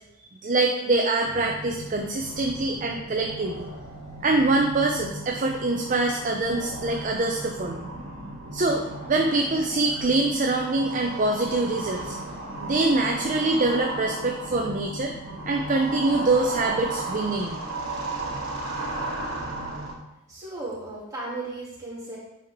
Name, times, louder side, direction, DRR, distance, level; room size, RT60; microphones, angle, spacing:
voice 1, 0.2-3.7 4.2-7.8 8.5-12.2 12.6-15.1 15.4-17.6, right 2 dB, 35° right, 2 dB, 0.5 m, -24 dB
sound 1, 1.2-19.9, right 2 dB, 80° right, 1.7 m, -35 dB
voice 2, 20.3-22.2, right 2 dB, 15° right, -7 dB, 2.5 m, -35 dB
8.6 x 4.9 x 3.6 m, 0.89 s
head